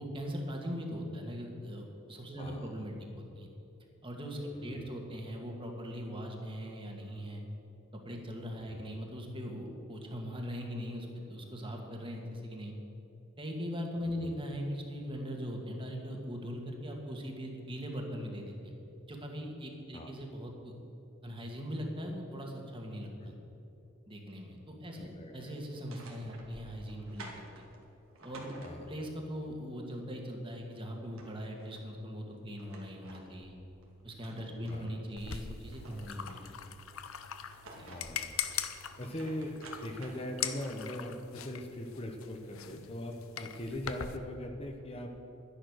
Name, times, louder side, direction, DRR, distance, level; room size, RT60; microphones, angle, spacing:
voice 1, 0.0-3.5 4.0-7.4 7.9-12.7 13.4-18.7 19.1-20.7 21.2-23.3 24.1-27.3 28.2-28.5 28.9-33.5 34.0-36.6 37.7-37.9, equal, 25° right, 1 dB, 2.0 m, -40 dB
voice 2, 2.4-2.9 4.5-4.9 8.7-9.0 14.2-14.3 19.9-20.1 23.2-23.3 25.0-25.6 26.2-26.3 28.6-29.0 34.6-34.9 37.9-38.3 39.0-45.1, left 1 dB, 30° left, 3 dB, 0.9 m, -41 dB
sound 1, 25.7-29.2 30.6-30.7 31.0-31.8 32.3-35.0 35.4-36.7 37.3-40.9, right 2 dB, 85° right, 2.5 m, -53 dB
sound 2, 35.2-44.2, left 9 dB, 90° left, 0.8 m, -41 dB
12.0 x 10.5 x 6.5 m, 3.0 s
head